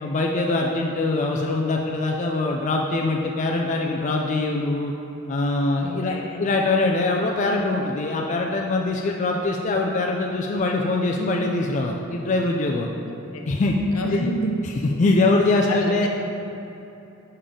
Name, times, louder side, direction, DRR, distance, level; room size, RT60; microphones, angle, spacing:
voice 1, 0.0-4.9 5.3-12.9 13.5-13.8 14.1-14.3 14.6-16.1, left 2 dB, 35° left, 0 dB, 0.3 m, -23 dB
voice 2, 5.8-6.4 13.3-13.6 13.9-14.6 15.0-15.2 15.7-16.1, equal, 75° left, 2 dB, 0.7 m, -29 dB
6.8 x 5.4 x 3.7 m, 2.9 s
head